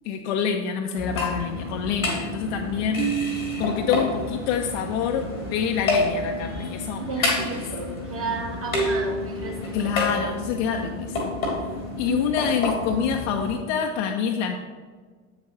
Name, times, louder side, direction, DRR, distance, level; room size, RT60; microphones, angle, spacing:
voice 1, 0.0-3.1 3.6-7.0 9.7-11.4 12.0-14.6, left 7 dB, 60° left, 3 dB, 0.6 m, -26 dB
sound 1, 1.0-13.6, left 1 dB, 90° left, 1.6 m, -29 dB
voice 2, 7.0-10.0 12.0-12.5, right 4 dB, 35° right, 2 dB, 1.4 m, -33 dB
7.8 x 6.7 x 3.0 m, 1.5 s
figure-of-eight pair, 60°, 41 cm